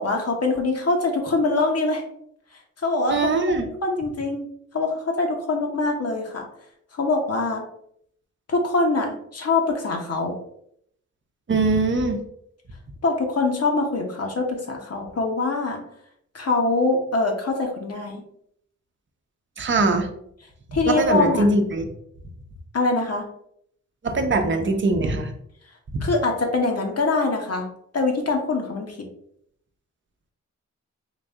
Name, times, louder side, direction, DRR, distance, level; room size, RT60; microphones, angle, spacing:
voice 1, 0.0-2.0 2.8-4.5 4.7-6.5 7.0-7.6 8.5-10.3 13.0-15.8 16.3-18.2 20.7-21.5 22.7-23.3 26.0-27.7 27.9-29.0, left 3 dB, 55° left, 2 dB, 1.0 m, -23 dB
voice 2, 3.1-3.7 11.5-12.2 19.6-20.1 20.9-21.9 24.0-25.3 25.9-26.1, right 2 dB, 40° right, 4 dB, 0.7 m, -21 dB
3.9 x 2.6 x 3.5 m, 0.70 s
cardioid pair, 60°, 30 cm